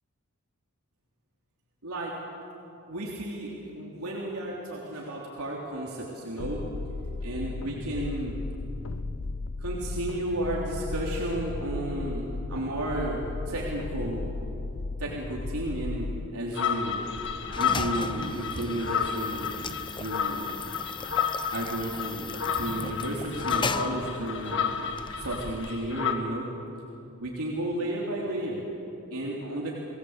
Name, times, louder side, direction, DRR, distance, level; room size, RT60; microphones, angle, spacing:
voice 1, 1.8-2.1 2.9-6.7 7.2-8.4 9.6-14.3 15.0-17.0 17.6-19.6 20.0-20.6 21.5-24.7 25.2-26.5 27.2-28.7 29.1-29.7, right 1 dB, 85° right, -3 dB, 3.5 m, -33 dB
sound 1, 6.4-16.3, left 3 dB, 75° left, 0.7 m, -35 dB
sound 2, 16.5-26.1, left 7 dB, 55° left, 1.8 m, -31 dB
sound 3, 16.9-26.2, left 4 dB, 20° left, 0.7 m, -37 dB
30.0 x 19.5 x 8.2 m, 2.9 s
head